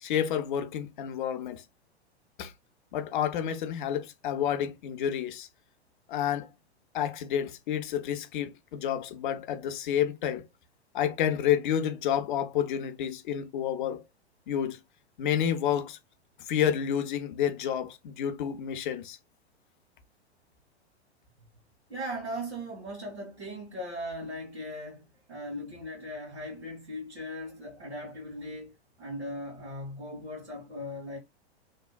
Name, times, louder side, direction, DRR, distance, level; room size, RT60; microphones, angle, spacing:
voice 1, 0.0-1.6 2.4-2.5 2.9-5.5 6.1-6.5 6.9-10.4 10.9-14.0 14.5-14.8 15.2-16.0 16.5-19.2, left 9 dB, 50° left, 0.5 m, -29 dB
voice 2, 21.9-31.2, equal, 80° right, 1.4 m, -39 dB
2.9 x 2.1 x 2.2 m
figure-of-eight pair, 100°, 33 cm